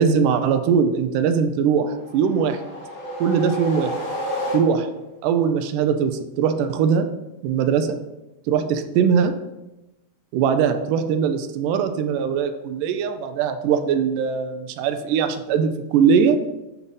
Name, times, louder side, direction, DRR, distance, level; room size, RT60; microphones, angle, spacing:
voice 1, 0.0-2.6 3.2-4.0 4.5-4.9 5.2-7.1 7.4-8.0 8.5-9.4 10.3-16.4, right 6 dB, 80° right, 8 dB, 2.0 m, -21 dB
sound 1, 2.0-5.1, equal, 25° left, 2.3 m, -30 dB
7.2 x 4.0 x 5.5 m, 0.98 s
omnidirectional pair, 4.0 m